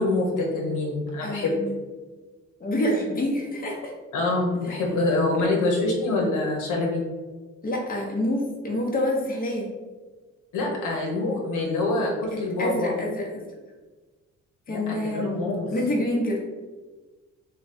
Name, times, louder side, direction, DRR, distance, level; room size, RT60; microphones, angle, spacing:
voice 1, 0.0-1.6 4.1-7.0 10.5-13.0 14.7-15.7, left 2 dB, 80° left, -1 dB, 0.9 m, -25 dB
voice 2, 1.2-1.7 2.6-3.9 7.6-9.7 12.3-13.3 14.7-15.4 15.7-16.4, left 1 dB, 30° left, -2 dB, 1.0 m, -27 dB
3.2 x 2.3 x 4.2 m, 1.3 s
cardioid pair, 90°, 30 cm